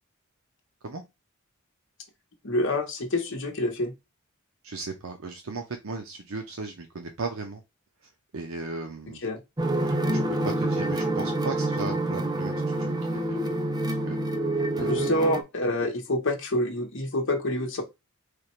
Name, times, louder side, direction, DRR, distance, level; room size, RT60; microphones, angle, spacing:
voice 1, 2.4-3.9 9.2-9.4 14.8-17.8, left 1 dB, 60° left, 1.1 m, -27 dB
voice 2, 4.6-7.6 8.3-9.2 9.9-10.0 10.3-13.4 14.0-14.2 14.8-15.1, right 3 dB, 70° right, 0.7 m, -36 dB
sound 1, 9.6-15.4, right 1 dB, 20° right, 0.5 m, -27 dB
3.3 x 2.5 x 4.2 m
head